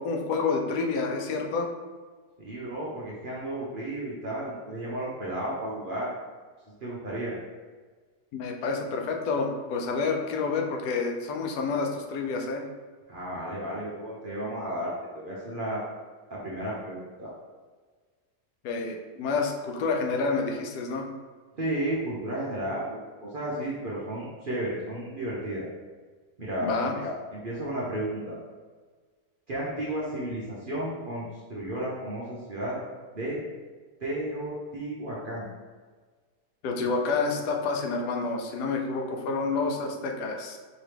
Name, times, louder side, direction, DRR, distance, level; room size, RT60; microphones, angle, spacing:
voice 1, 0.0-1.7 8.3-12.6 18.6-21.1 26.6-27.1 36.6-40.6, left 4 dB, 80° left, 2 dB, 1.2 m, -29 dB
voice 2, 2.4-6.1 6.8-7.3 13.1-15.8 16.3-17.3 21.6-23.0 23.3-25.6 26.4-26.7 27.3-28.4 29.5-32.8 33.1-33.4 34.0-35.5 36.8-36.9, right 1 dB, 45° right, -6 dB, 0.7 m, -33 dB
4.7 x 3.1 x 3.3 m, 1.4 s
omnidirectional pair, 1.7 m